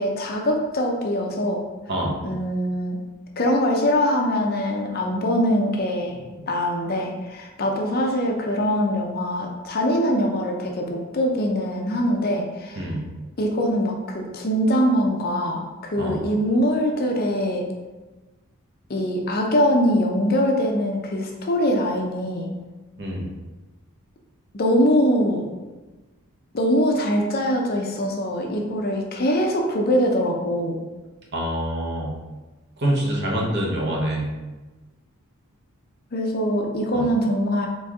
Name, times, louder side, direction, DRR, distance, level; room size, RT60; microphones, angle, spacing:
voice 1, 0.0-1.6 2.2-3.0 3.4-12.9 13.4-17.7 18.9-22.5 24.5-25.5 26.5-30.8 36.1-37.7, equal, 45° left, 1 dB, 0.6 m, -23 dB
voice 2, 31.3-32.2 32.8-34.3 36.9-37.1, right 1 dB, 50° right, -2 dB, 0.9 m, -25 dB
4.3 x 3.0 x 3.5 m, 1.2 s
head